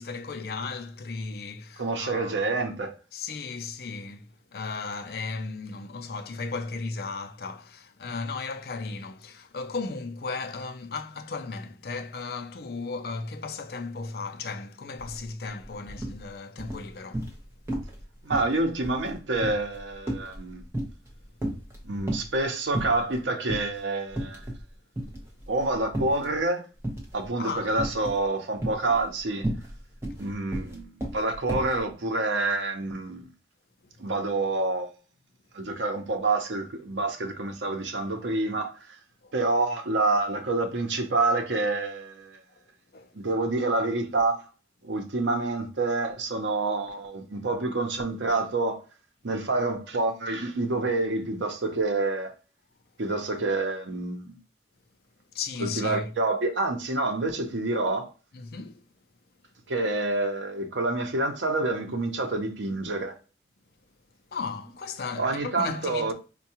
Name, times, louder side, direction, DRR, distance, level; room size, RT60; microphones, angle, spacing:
voice 1, 0.0-2.7 3.1-17.3 27.4-27.7 30.1-30.2 33.8-33.9 39.2-39.3 42.5-42.6 42.9-43.2 55.3-56.1 58.3-58.8 64.3-66.1, left 4 dB, 55° left, 0.4 m, -35 dB
voice 2, 1.8-2.9 18.2-20.6 21.8-24.4 25.5-26.7 27.1-29.5 30.2-33.3 34.0-34.9 35.5-39.0 39.3-42.4 43.1-44.4 44.8-48.8 49.2-52.3 53.0-54.4 55.6-58.1 59.7-63.2 65.2-66.1, right 2 dB, 85° right, 0.7 m, -27 dB
sound 1, 15.0-15.2 15.5-16.2 16.6-17.4 17.7-18.0 18.3-21.1 21.4-22.4 22.7-23.2 23.5-23.7 24.1-24.7 24.9-26.3 26.8-27.2 27.8-28.2 28.6-31.8, right 1 dB, 15° right, 0.9 m, -33 dB
4.5 x 2.3 x 2.8 m
head